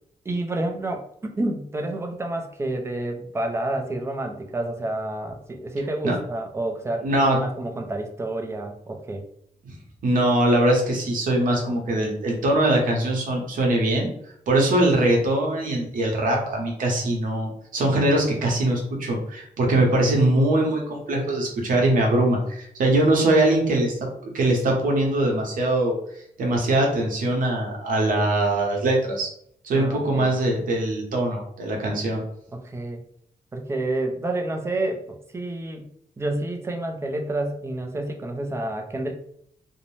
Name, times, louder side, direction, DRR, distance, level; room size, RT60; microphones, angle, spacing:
voice 1, 0.3-9.2 29.7-30.3 32.5-33.0 33.5-35.9 36.2-39.1, right 2 dB, 20° right, 3 dB, 0.3 m, -29 dB
voice 2, 7.0-7.4 10.0-14.1 14.5-23.9 24.2-26.0 26.4-29.3 29.6-32.2, right 1 dB, 75° right, 0 dB, 0.8 m, -22 dB
2.6 x 2.0 x 3.0 m, 0.68 s
wide cardioid pair, 165°, 14 cm